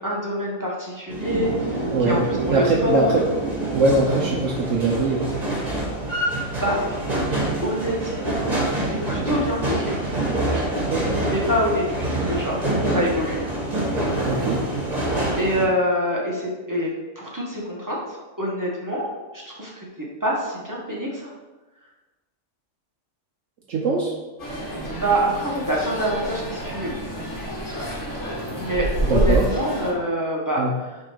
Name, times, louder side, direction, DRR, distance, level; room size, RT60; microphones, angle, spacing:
voice 1, 0.0-3.0 3.9-4.6 6.0-6.8 7.6-8.4 8.9-9.9 10.4-10.7 11.3-12.6 12.9-13.4 15.4-19.9 20.2-21.3 24.9-26.9 28.6-31.0, equal, 15° right, -4 dB, 1.3 m, -26 dB
sound 1, 1.1-15.6, right 1 dB, 30° right, 1.6 m, -26 dB
voice 2, 1.9-2.2 2.5-3.2 3.7-5.3 10.8-11.2 14.3-14.7 23.7-24.1 29.0-29.5 30.6-30.7, right 3 dB, 75° right, -2 dB, 1.1 m, -22 dB
sound 2, 24.4-29.9, right 1 dB, 65° left, 1.8 m, -28 dB
6.1 x 3.6 x 4.9 m, 1.2 s
omnidirectional pair, 1.3 m